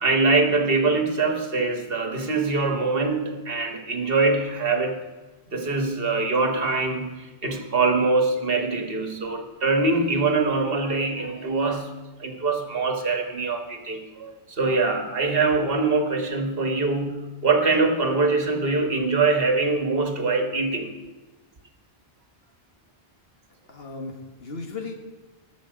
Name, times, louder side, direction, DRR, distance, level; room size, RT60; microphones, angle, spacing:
voice 1, 0.0-5.0 5.5-11.9 12.2-20.9, right 3 dB, 65° right, 5 dB, 1.6 m, -23 dB
voice 2, 23.7-24.9, left 3 dB, 75° left, 3 dB, 1.8 m, -36 dB
18.5 x 7.2 x 5.1 m, 1.2 s
omnidirectional pair, 1.0 m